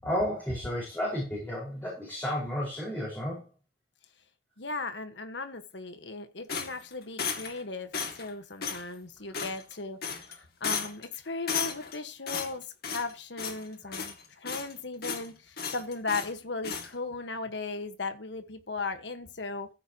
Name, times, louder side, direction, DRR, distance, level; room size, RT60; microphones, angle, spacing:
voice 1, 0.0-3.5 13.8-13.9, equal, 10° left, -5 dB, 5.1 m, -32 dB
voice 2, 4.6-10.0 10.4-19.7, left 3 dB, 75° left, 8 dB, 1.5 m, -37 dB
sound 1, 6.5-7.6 7.9-8.3 8.6-8.8 9.3-9.7 10.0-10.3 10.6-11.1 11.5-12.0 12.3-13.1 13.4-13.6 13.9-14.7 15.0-15.3 15.6-16.3 16.6-16.9, left 6 dB, 60° left, 2.3 m, -34 dB
15.0 x 9.0 x 3.0 m, 0.30 s
head